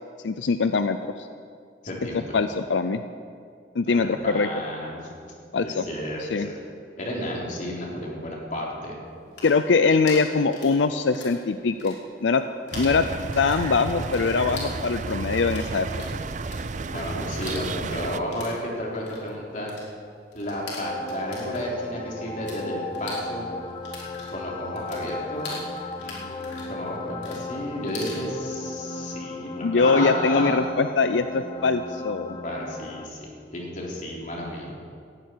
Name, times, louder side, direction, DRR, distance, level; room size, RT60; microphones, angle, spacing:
voice 1, 0.2-1.3 2.3-3.0 3.8-4.5 5.5-5.8 6.2-6.5 9.4-11.9 12.2-12.4 12.8-13.1 13.4-15.9 29.6-32.4, left 4 dB, 90° left, 10 dB, 0.5 m, -22 dB
voice 2, 1.8-2.4 3.9-5.0 5.6-6.5 7.0-9.0 16.9-19.7 20.3-23.4 24.3-25.5 26.0-30.6 32.4-34.8, equal, 45° left, -3 dB, 3.7 m, -32 dB
sound 1, 9.1-11.4 11.7-12.4 12.7-22.6 22.9-28.2, left 3 dB, 70° left, 4.0 m, -41 dB
sound 2, 12.7-18.2, right 3 dB, 40° right, 0.5 m, -32 dB
sound 3, 20.8-33.1, left 2 dB, 30° left, 0.9 m, -36 dB
18.5 x 15.0 x 4.6 m, 2.3 s
head